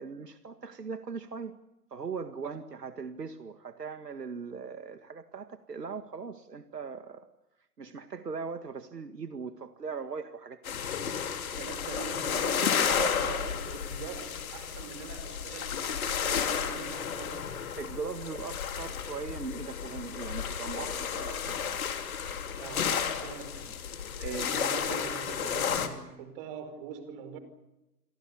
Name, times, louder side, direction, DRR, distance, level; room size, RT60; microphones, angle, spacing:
voice 1, 0.0-1.6 1.9-7.3 7.8-10.8 17.8-21.9 24.2-24.5, right 5 dB, 75° right, 9 dB, 1.9 m, -39 dB
sound 1, 10.6-25.9, left 7 dB, 60° left, 3.3 m, -32 dB
voice 2, 11.5-17.5 22.6-23.8 24.2-27.4, right 7 dB, 35° right, 9 dB, 5.2 m, -42 dB
29.0 x 23.5 x 7.0 m, 0.95 s
figure-of-eight pair, 120°, 48 cm